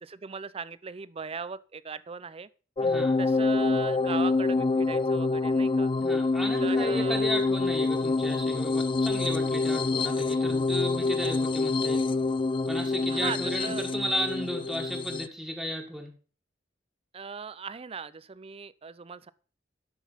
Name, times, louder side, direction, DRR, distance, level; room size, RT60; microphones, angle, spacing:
voice 1, 0.0-2.5 3.2-5.9 6.6-7.3 13.1-13.8 17.1-19.3, right 5 dB, 30° right, 0.5 m, -38 dB
sound 1, 2.8-15.3, left 3 dB, 25° left, 0.4 m, -26 dB
voice 2, 2.8-3.2 6.0-12.1 12.7-16.1, equal, ahead, 1.9 m, -34 dB
12.5 x 6.3 x 5.6 m
head